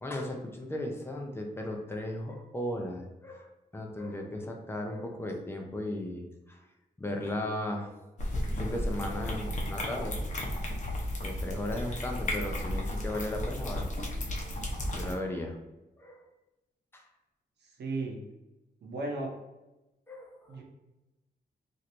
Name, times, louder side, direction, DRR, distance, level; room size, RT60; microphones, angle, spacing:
voice 1, 0.0-6.6 7.0-8.0 8.3-10.2 11.2-14.0 14.9-15.6 16.0-16.2 16.9-17.0 20.1-20.6, left 1 dB, 15° left, 2 dB, 0.5 m, -36 dB
sound 1, 8.2-15.1, left 1 dB, 45° left, 0.7 m, -33 dB
voice 2, 17.6-18.2 18.8-19.3 20.5-20.6, right 2 dB, 75° right, 1 dB, 0.7 m, -35 dB
3.1 x 2.6 x 2.9 m, 1.0 s
wide cardioid pair, 130°, 18 cm